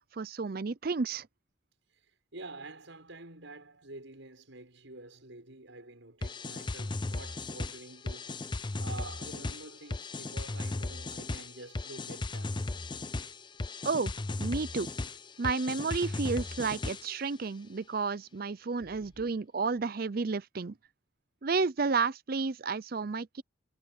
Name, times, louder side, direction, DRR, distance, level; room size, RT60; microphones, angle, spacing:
voice 1, 0.1-1.3 13.8-14.1 14.4-14.9 15.4-20.7 21.4-23.4, right 4 dB, 45° right, 0.5 m, -31 dB
voice 2, 2.3-12.7 18.8-19.4, right 2 dB, 70° right, 6.5 m, -48 dB
sound 1, 6.2-17.3, left 2 dB, 20° left, 0.5 m, -36 dB
head